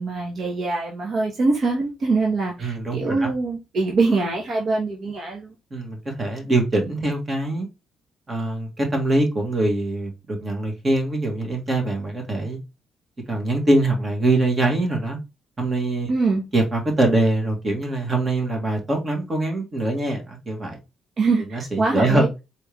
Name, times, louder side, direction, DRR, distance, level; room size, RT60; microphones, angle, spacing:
voice 1, 0.0-5.5 16.1-16.4 21.2-22.3, right 3 dB, 55° right, 1.4 m, -23 dB
voice 2, 2.6-3.3 5.7-7.7 8.3-12.6 13.3-15.2 15.6-16.1 16.5-20.8 21.5-22.3, right 2 dB, 30° right, 1.9 m, -23 dB
4.4 x 3.5 x 3.4 m
cardioid pair, 90°, 0 cm